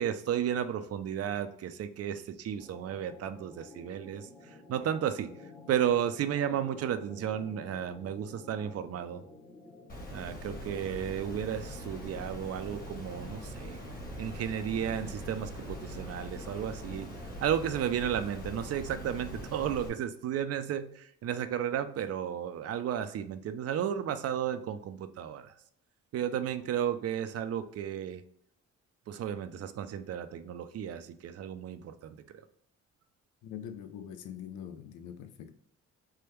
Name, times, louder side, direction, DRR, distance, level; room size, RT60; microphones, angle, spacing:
voice 1, 0.0-9.2 10.1-13.8 14.2-17.1 17.4-25.5 26.1-28.2 29.1-32.4, right 9 dB, 55° right, 0.4 m, -33 dB
sound 1, 2.6-17.7, left 2 dB, 10° left, 0.7 m, -52 dB
Water, 9.9-19.9, equal, 30° left, 1.2 m, -42 dB
voice 2, 33.4-35.5, left 9 dB, 80° left, 0.5 m, -43 dB
3.4 x 2.2 x 3.0 m
cardioid pair, 90°, 30 cm